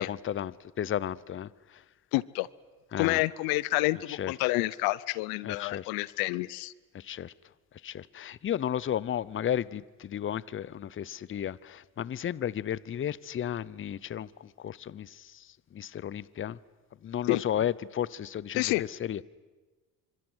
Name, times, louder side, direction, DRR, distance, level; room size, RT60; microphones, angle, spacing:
voice 1, 0.0-1.8 2.9-3.2 4.1-4.3 5.4-5.9 6.9-7.3 7.8-15.5 15.7-16.6 17.0-19.2, left 10 dB, 35° left, 0.8 m, -33 dB
voice 2, 2.1-2.5 3.0-6.7 17.3-17.4 18.5-18.8, left 21 dB, 85° left, 0.8 m, -28 dB
26.0 x 26.0 x 8.0 m
supercardioid pair, 95°, 35 cm